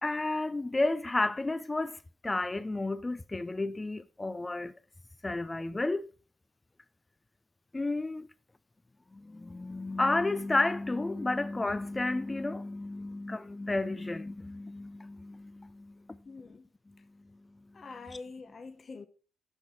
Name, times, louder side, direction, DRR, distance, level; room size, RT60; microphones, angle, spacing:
voice 1, 0.0-4.7 5.2-6.1 7.7-8.3 9.1-16.2 18.1-18.2, left 2 dB, 20° left, 0.4 m, -32 dB
voice 2, 16.3-16.6 17.7-19.1, left 4 dB, 40° left, 0.8 m, -45 dB
9.7 x 6.2 x 4.6 m
cardioid pair, 90°, 0 cm